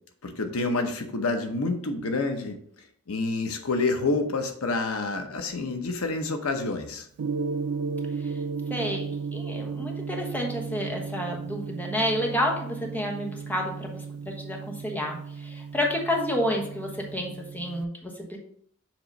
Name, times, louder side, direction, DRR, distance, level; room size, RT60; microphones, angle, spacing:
voice 1, 0.2-2.6 3.1-7.1, left 3 dB, 80° left, 6 dB, 0.8 m, -28 dB
Gong, 7.2-17.8, right 5 dB, 90° right, 0.4 m, -35 dB
voice 2, 8.7-9.1 9.3-15.2 15.4-18.4, left 1 dB, 10° left, 0 dB, 1.1 m, -30 dB
7.4 x 3.0 x 5.2 m, 0.64 s
head